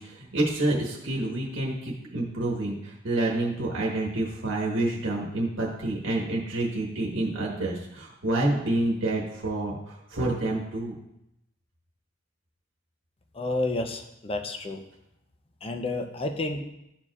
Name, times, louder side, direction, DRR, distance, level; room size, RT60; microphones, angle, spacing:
voice 1, 0.0-10.9, right 2 dB, 65° right, -3 dB, 1.2 m, -28 dB
voice 2, 13.3-14.8 15.6-16.6, left 2 dB, 30° left, 6 dB, 0.6 m, -30 dB
12.5 x 4.6 x 2.4 m, 0.83 s
head